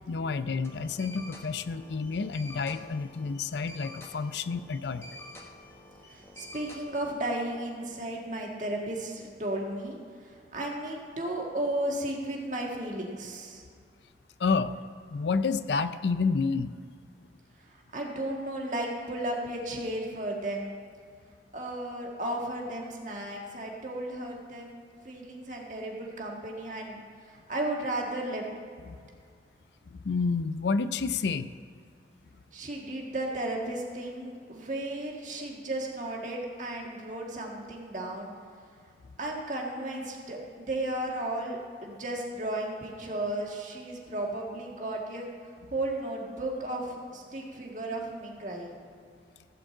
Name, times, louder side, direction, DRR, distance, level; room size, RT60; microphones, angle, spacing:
voice 1, 0.1-5.0 14.4-14.7 15.1-16.7 29.9-31.5, left 4 dB, 75° left, 13 dB, 0.4 m, -29 dB
sound 1, 0.6-7.2, left 1 dB, 15° left, 1.1 m, -48 dB
voice 2, 6.1-10.0 10.5-13.6 17.9-20.7 21.5-27.0 27.5-28.4 32.5-38.3 39.2-45.3 45.7-48.8, right 1 dB, 45° right, -1 dB, 1.8 m, -34 dB
15.5 x 5.1 x 7.7 m, 2.2 s
head